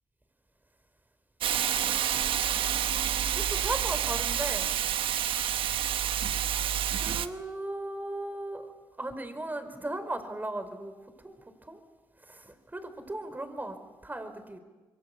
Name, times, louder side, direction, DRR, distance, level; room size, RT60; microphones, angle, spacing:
voice 1, 1.4-4.7 7.0-8.7 9.0-11.0 11.2-11.4 11.6-11.8 12.2-13.8 14.0-14.6, right 1 dB, 20° right, 9 dB, 4.8 m, -37 dB
Hiss, 1.4-7.3, right 10 dB, 80° right, 1.1 m, -28 dB
26.5 x 23.0 x 8.5 m, 1.3 s
supercardioid pair, 55°, 9 cm